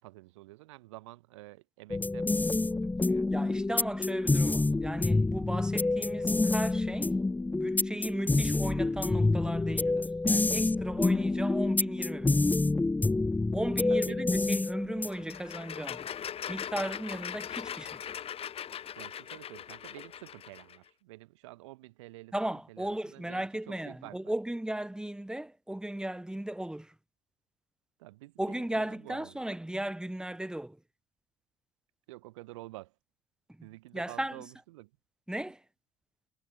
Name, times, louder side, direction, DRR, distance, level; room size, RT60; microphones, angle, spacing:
voice 1, 0.0-3.3 13.9-14.3 19.0-22.3 22.7-24.3 28.0-29.4 32.1-32.9 33.6-34.9, right 19 dB, 90° right, 4.6 m, -49 dB
sound 1, 1.9-15.4, left 2 dB, 10° left, 0.6 m, -28 dB
voice 2, 3.3-7.2 7.5-12.4 13.5-16.1 16.5-18.0 22.3-26.9 28.4-30.8 33.5-33.7 33.9-34.4 35.3-35.6, right 1 dB, 5° right, 1.3 m, -36 dB
sound 2, 15.1-20.8, left 9 dB, 40° left, 0.8 m, -40 dB
supercardioid pair, 80°, 15 cm